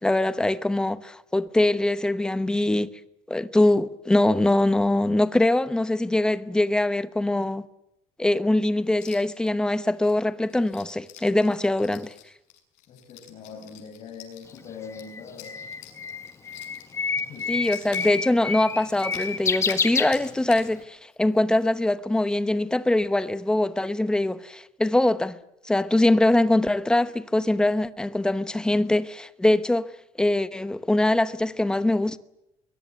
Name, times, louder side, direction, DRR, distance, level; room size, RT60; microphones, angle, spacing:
voice 1, 0.0-2.9 3.3-7.7 8.2-12.1 17.5-25.3 25.6-29.9 30.2-32.2, left 1 dB, 5° left, 0.9 m, -23 dB
sound 1, 8.9-9.5 9.8-19.8 20.1-20.7 21.1-21.2 21.5-21.9 22.1-22.2 22.7-22.9, left 11 dB, 80° left, 6.7 m, -47 dB
voice 2, 12.9-15.6 17.1-17.7, left 5 dB, 45° left, 7.1 m, -42 dB
Bird, 14.5-20.7, left 5 dB, 20° left, 1.6 m, -29 dB
23.5 x 22.0 x 9.3 m
cardioid pair, 155°, 13 cm